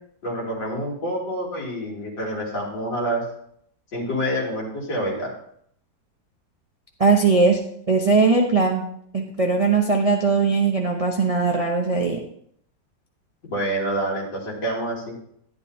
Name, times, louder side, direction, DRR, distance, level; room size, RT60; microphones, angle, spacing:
voice 1, 0.2-3.2 3.9-5.3 13.5-15.1, right 1 dB, 70° left, -4 dB, 3.4 m, -27 dB
voice 2, 7.0-7.6 7.9-8.8 9.1-12.2, right 4 dB, 40° right, 1 dB, 0.5 m, -19 dB
11.5 x 11.0 x 2.7 m, 0.68 s
omnidirectional pair, 2.0 m